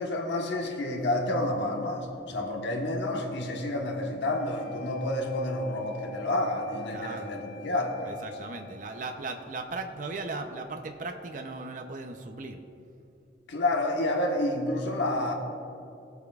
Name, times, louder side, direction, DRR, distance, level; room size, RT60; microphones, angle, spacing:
voice 1, 0.0-8.2 13.5-15.3, left 1 dB, 75° left, 0 dB, 1.2 m, -29 dB
sound 1, 4.3-12.3, left 4 dB, ahead, 1.9 m, -49 dB
voice 2, 6.9-7.3 8.0-12.6, right 3 dB, 45° right, 5 dB, 0.6 m, -37 dB
18.0 x 8.2 x 2.4 m, 2.7 s
head